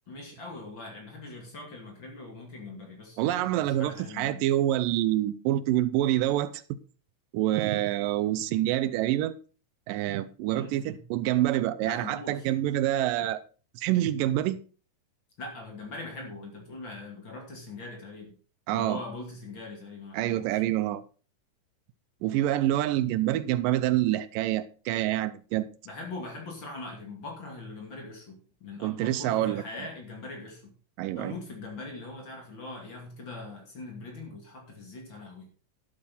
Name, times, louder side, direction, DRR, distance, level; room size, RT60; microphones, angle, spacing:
voice 1, 0.1-4.4 10.5-11.0 11.8-12.5 15.4-18.4 18.7-20.6 25.8-30.7 31.1-35.5, left 2 dB, 35° left, 2.9 m, -42 dB
voice 2, 3.2-6.6 7.3-9.3 9.9-13.4 13.8-14.6 18.7-19.0 20.1-21.0 22.2-25.7 28.8-29.9 31.0-31.3, right 13 dB, 85° right, 2.3 m, -27 dB
11.5 x 8.3 x 4.2 m
omnidirectional pair, 3.9 m